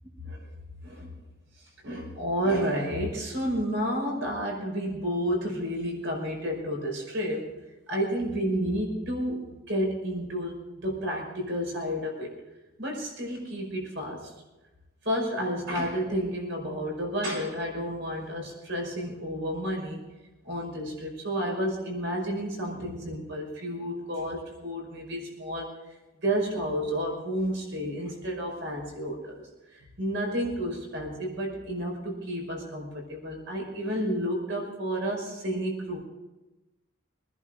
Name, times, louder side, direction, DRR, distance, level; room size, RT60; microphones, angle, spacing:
voice 1, 0.8-1.1 1.8-7.5 7.9-12.3 12.8-14.3 15.0-20.0 20.4-25.7 26.2-29.4 29.7-36.0, equal, 55° right, 0 dB, 5.5 m, -31 dB
24.5 x 11.0 x 3.9 m, 1.1 s
head